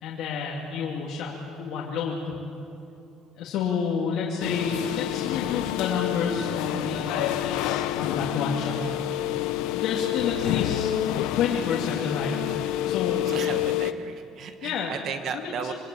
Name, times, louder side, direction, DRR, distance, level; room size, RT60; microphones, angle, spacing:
voice 1, 0.0-1.3 1.6-2.4 3.4-9.0 9.7-10.9 11.3-13.3 14.6-14.9 15.3-15.4 15.7-15.8, left 6 dB, 55° left, -4 dB, 2.9 m, -29 dB
sound 1, 4.4-13.9, left 13 dB, 80° left, 1.0 m, -28 dB
voice 2, 13.2-15.7, right 7 dB, 40° right, 8 dB, 1.3 m, -35 dB
26.0 x 23.0 x 8.8 m, 2.7 s
cardioid pair, 175°, 0 cm